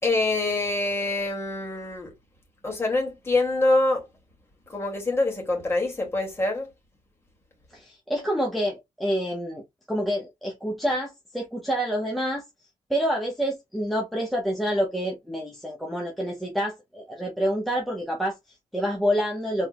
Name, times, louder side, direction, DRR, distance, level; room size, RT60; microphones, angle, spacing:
voice 1, 0.0-2.1 2.6-4.1 4.7-6.7, left 2 dB, 20° left, 2.1 m, -25 dB
voice 2, 7.7-9.6 9.9-12.4 12.9-19.7, equal, ahead, 1.0 m, -27 dB
4.5 x 3.6 x 2.2 m
wide cardioid pair, 150°, 14 cm